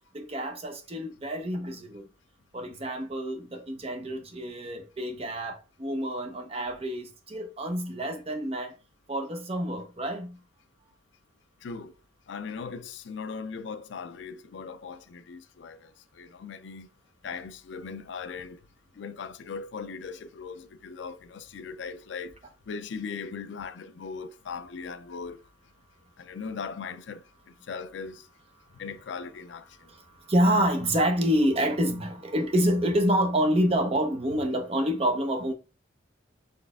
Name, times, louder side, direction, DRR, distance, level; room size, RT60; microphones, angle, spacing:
voice 1, 0.1-2.1 2.5-8.7 9.1-10.4 29.9-35.5, equal, 30° right, 0.7 m, -27 dB
voice 2, 11.6-11.9 12.3-16.9 17.2-18.6 19.0-22.4 22.7-25.4 26.2-27.2 27.7-28.2 28.7-29.7, left 5 dB, 70° left, 0.4 m, -39 dB
4.2 x 3.3 x 3.5 m
head